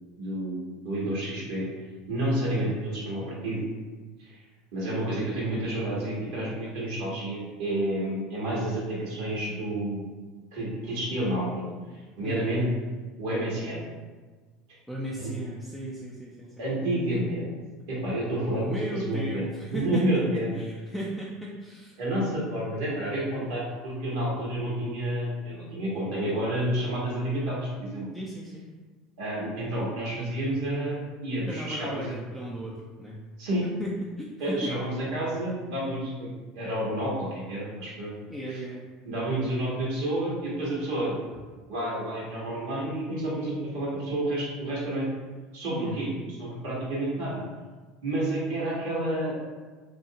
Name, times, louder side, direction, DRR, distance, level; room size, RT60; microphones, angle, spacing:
voice 1, 0.2-0.6 0.8-1.7 2.1-3.6 4.2-4.4 4.7-10.0 10.5-11.6 11.9-12.6 13.2-13.8 14.7-14.8 15.2-15.3 16.6-17.5 17.9-19.4 19.7-20.6 22.0-28.0 29.2-32.1 33.4-33.7 34.4-36.3 36.5-38.1 39.0-41.1 41.7-45.1 45.5-47.4 48.0-49.4, right 1 dB, 75° right, -6 dB, 1.1 m, -30 dB
voice 2, 2.2-2.5 12.2-12.5 14.9-16.5 16.8-17.0 18.5-20.1 20.5-22.0 28.1-28.6 31.5-33.2 33.8-34.7 38.3-38.9 45.7-46.3, equal, ahead, -5 dB, 0.4 m, -36 dB
2.6 x 2.4 x 2.7 m, 1.4 s
hypercardioid pair, 85°, 0 cm